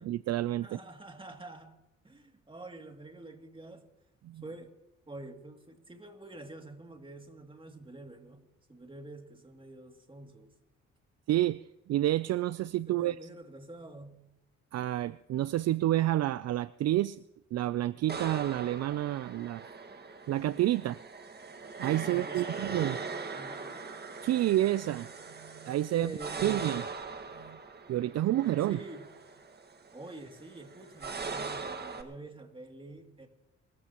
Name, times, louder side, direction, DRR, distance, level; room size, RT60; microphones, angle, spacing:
voice 1, 0.0-0.8 4.2-4.4 11.3-13.2 14.7-17.2 17.5-19.7 20.3-21.0 21.8-23.0 24.2-25.1 25.4-26.1 26.4-26.8 27.4-27.6 27.9-28.8, right 14 dB, 60° right, 0.4 m, -29 dB
voice 2, 0.6-1.8 2.0-3.9 4.4-4.7 5.1-10.5 12.9-14.2 22.0-24.0 25.9-26.8 28.6-29.1 29.9-33.3, right 2 dB, 15° right, 2.6 m, -47 dB
sound 1, 18.1-32.0, right 4 dB, 35° right, 1.8 m, -41 dB
28.0 x 15.0 x 3.0 m
cardioid pair, 90°, 30 cm